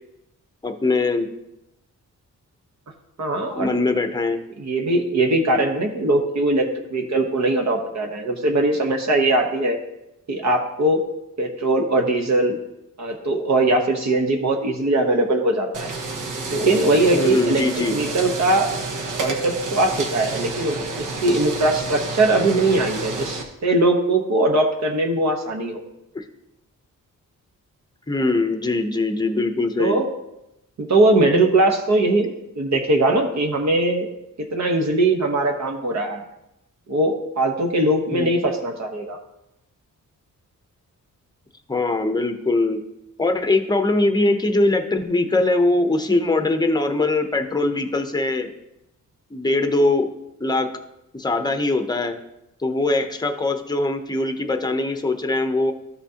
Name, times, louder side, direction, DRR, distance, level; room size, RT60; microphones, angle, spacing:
voice 1, 0.6-1.3 3.6-4.4 17.1-17.9 26.1-26.2 28.1-30.0 38.1-38.4 41.7-42.8 43.2-48.5 49.3-50.1 50.4-50.7 51.1-52.2 52.6-55.7, left 2 dB, 15° left, 6 dB, 0.7 m, -21 dB
voice 2, 3.2-3.7 4.6-9.8 10.3-11.0 11.4-12.6 13.0-15.9 16.5-17.6 17.9-18.7 19.2-25.8 29.8-30.1 30.8-34.1 34.4-36.2 36.9-39.2, right 2 dB, 60° right, 3 dB, 1.0 m, -20 dB
sound 1, 15.7-23.4, right 3 dB, 80° right, 1.1 m, -30 dB
13.5 x 5.9 x 2.8 m, 0.88 s
wide cardioid pair, 145°, 32 cm